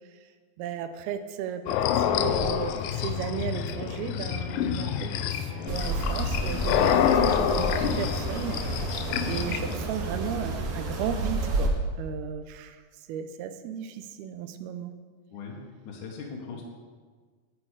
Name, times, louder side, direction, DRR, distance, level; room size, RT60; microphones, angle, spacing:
voice 1, 0.6-8.6 9.2-12.8 13.1-14.9, right 8 dB, 80° right, 10 dB, 2.5 m, -35 dB
sound 1, 1.7-9.7, left 9 dB, 85° left, 2.0 m, -27 dB
sound 2, 3.0-10.6, left 1 dB, 10° left, 1.0 m, -48 dB
sound 3, 5.7-11.7, right 2 dB, 65° right, 2.2 m, -30 dB
voice 2, 15.9-16.6, left 5 dB, 65° left, -1 dB, 2.3 m, -40 dB
9.8 x 8.7 x 4.8 m, 1.5 s
omnidirectional pair, 4.5 m